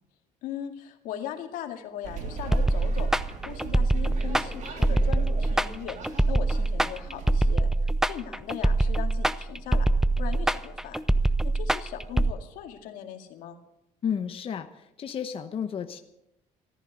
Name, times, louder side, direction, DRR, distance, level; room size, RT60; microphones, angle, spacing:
voice 1, 0.4-7.7 8.0-9.9 10.2-11.0 11.4-13.6, left 10 dB, 90° left, 5 dB, 2.1 m, -39 dB
sound 1, 2.0-7.6, right 5 dB, 60° right, 3.2 m, -39 dB
sound 2, 2.5-12.3, right 2 dB, 5° right, 0.6 m, -24 dB
voice 2, 14.0-16.0, left 7 dB, 40° left, 7 dB, 1.0 m, -32 dB
14.5 x 13.5 x 6.4 m, 0.84 s
cardioid pair, 120°, 14 cm